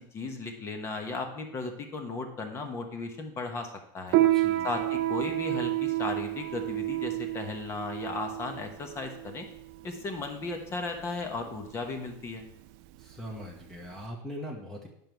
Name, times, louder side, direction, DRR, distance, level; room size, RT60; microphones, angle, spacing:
voice 1, 0.1-4.2 4.6-9.5 9.8-12.4, left 3 dB, 25° left, 5 dB, 1.2 m, -36 dB
Piano, 4.1-14.0, right 16 dB, 60° right, 0.5 m, -30 dB
voice 2, 4.2-4.7 13.0-14.9, equal, 5° left, -1 dB, 1.2 m, -41 dB
9.7 x 5.4 x 4.6 m, 0.74 s
supercardioid pair, 155°, 10 cm